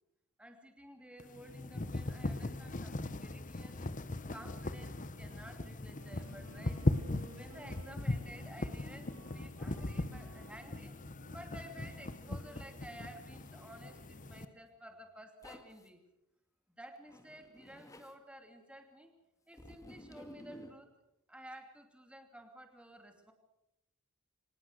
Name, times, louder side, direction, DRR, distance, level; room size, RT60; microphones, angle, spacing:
voice 1, 0.4-3.9 4.3-6.8 7.3-10.9 11.3-16.0 16.8-19.1 19.5-20.9 21.3-23.3, equal, 5° right, 5 dB, 2.7 m, -53 dB
sound 1, 1.2-14.5, left 2 dB, 35° left, 1.0 m, -39 dB
Wind instrument woodwind instrument, 5.8-14.5, right 4 dB, 85° right, 1.9 m, -59 dB
Zipper (clothing), 15.4-15.9 17.1-18.1 19.5-20.8, equal, 15° left, 2.0 m, -53 dB
24.5 x 19.0 x 6.5 m, 0.84 s
head